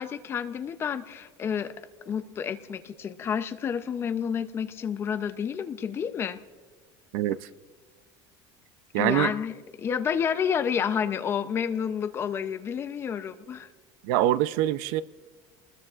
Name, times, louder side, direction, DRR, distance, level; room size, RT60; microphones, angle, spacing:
voice 1, 0.0-1.7 2.1-6.4 8.9-13.7, left 7 dB, 20° left, 0.5 m, -30 dB
voice 2, 8.9-9.3 14.0-15.0, right 14 dB, 65° right, 0.5 m, -24 dB
28.0 x 20.5 x 2.4 m
cardioid pair, 180°, 12 cm